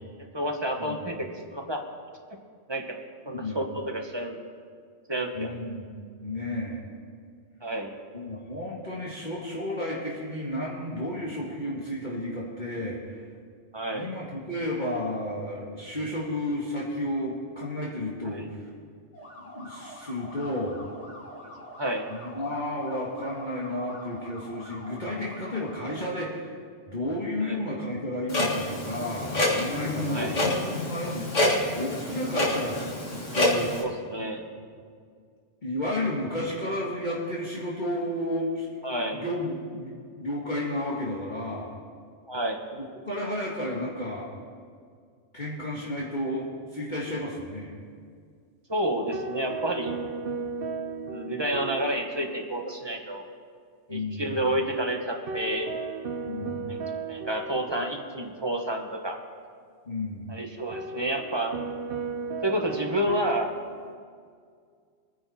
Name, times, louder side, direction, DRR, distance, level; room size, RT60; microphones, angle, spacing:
voice 1, 0.3-1.8 2.7-2.8 3.2-4.4 5.1-5.6 7.6-7.9 13.7-14.1 18.3-18.4 21.8-22.1 27.4-27.6 30.1-30.4 33.7-34.4 38.8-39.2 42.3-42.6 48.7-50.0 51.0-53.3 53.9-55.7 56.7-56.8 57.1-59.2 60.3-61.6 62.4-63.5, right 1 dB, 20° right, 2 dB, 1.3 m, -30 dB
voice 2, 3.3-3.6 5.3-5.8 6.2-6.8 8.1-13.2 13.9-18.7 19.6-20.8 22.1-26.5 26.9-31.5 31.7-32.8 33.3-33.7 34.6-34.7 35.6-38.7 39.1-39.9 40.2-41.7 42.8-44.3 45.3-46.5 46.7-47.8 53.9-54.4 56.2-56.8 59.9-60.3, left 1 dB, 40° left, -5 dB, 1.9 m, -32 dB
sound 1, 19.1-26.0, equal, 65° left, 3.5 m, -45 dB
Clock, 28.3-33.8, left 1 dB, 90° left, 2.2 m, -27 dB
sound 2, 49.1-52.6 52.9-53.0 55.3-58.6 60.7-63.9, right 4 dB, 55° right, 0.9 m, -36 dB
23.5 x 10.0 x 4.2 m, 2.1 s
omnidirectional pair, 1.2 m